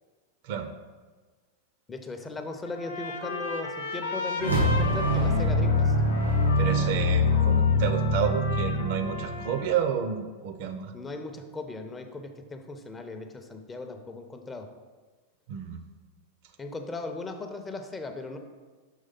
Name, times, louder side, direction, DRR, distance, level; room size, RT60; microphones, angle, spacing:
voice 1, 1.9-5.9 10.9-14.7 16.6-18.4, left 2 dB, 15° left, 6 dB, 0.6 m, -37 dB
Trumpet, 2.6-10.0, left 3 dB, 65° left, 0.6 m, -36 dB
sound 1, 4.4-9.7, left 2 dB, 90° right, 1.5 m, -24 dB
voice 2, 6.6-10.9 15.5-15.8, right 8 dB, 50° right, 8 dB, 0.5 m, -30 dB
6.4 x 3.3 x 5.3 m, 1.4 s
figure-of-eight pair, 90°, 0 cm